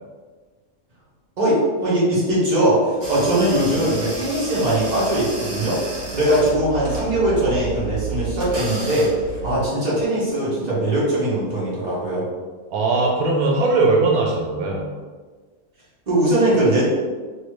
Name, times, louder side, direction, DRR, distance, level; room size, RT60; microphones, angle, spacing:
voice 1, 1.4-5.8 6.1-12.2 16.1-16.8, right 1 dB, 35° right, -8 dB, 1.1 m, -20 dB
sound 1, 3.0-9.7, right 4 dB, 60° right, 1.3 m, -31 dB
voice 2, 12.7-14.9, right 3 dB, 85° right, -1 dB, 1.1 m, -19 dB
3.1 x 2.6 x 3.1 m, 1.4 s
omnidirectional pair, 1.5 m